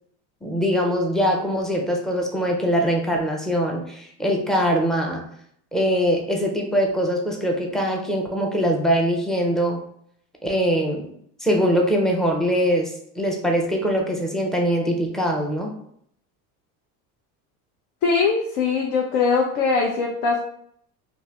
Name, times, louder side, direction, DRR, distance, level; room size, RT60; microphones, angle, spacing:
voice 1, 0.4-5.3 5.7-9.8 10.4-11.1 11.4-12.9 13.2-15.7, equal, ahead, 0 dB, 0.4 m, -22 dB
voice 2, 18.0-20.4, left 4 dB, 75° left, 1 dB, 0.7 m, -21 dB
2.6 x 2.4 x 3.2 m, 0.68 s
supercardioid pair, 105°, 45 cm